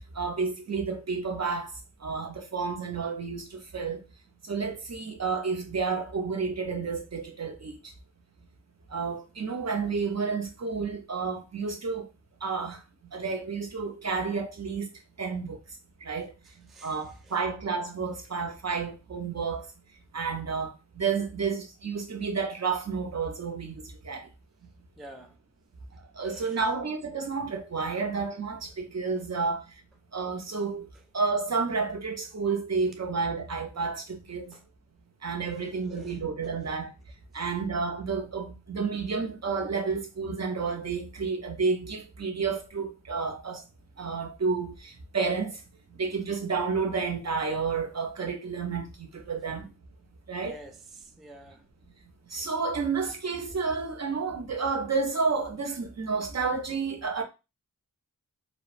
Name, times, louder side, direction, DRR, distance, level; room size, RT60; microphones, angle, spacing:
voice 1, 0.2-1.7 2.0-4.0 4.5-7.8 8.9-12.1 12.4-12.8 13.1-14.9 15.2-15.6 16.0-16.3 16.8-19.7 20.1-24.3 26.2-29.6 30.1-30.9 31.1-34.5 35.2-36.9 37.3-43.6 44.0-45.6 46.0-49.6 50.3-50.6 52.3-57.2, right 4 dB, 45° right, 0.6 m, -30 dB
voice 2, 25.0-25.3 26.2-26.6 34.5-34.6 35.5-36.2 37.3-37.4 50.4-51.6, right 1 dB, ahead, 0.3 m, -49 dB
2.8 x 2.0 x 2.4 m
wide cardioid pair, 55°, 36 cm